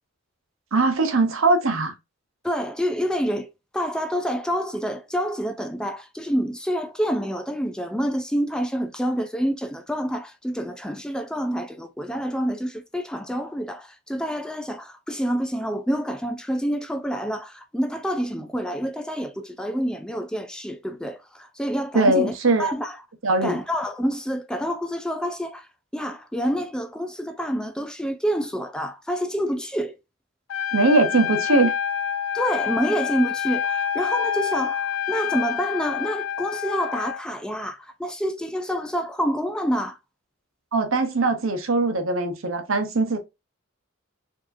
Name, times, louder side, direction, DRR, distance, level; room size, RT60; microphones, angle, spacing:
voice 1, 0.7-1.9 21.9-22.7 23.2-23.6 30.7-31.7 40.7-43.2, right 2 dB, 80° right, 0.9 m, -21 dB
voice 2, 2.4-23.0 23.4-30.0 32.3-40.0, equal, 5° left, 0.3 m, -27 dB
Trumpet, 30.5-37.2, left 8 dB, 85° left, 0.5 m, -27 dB
4.6 x 2.9 x 2.5 m
head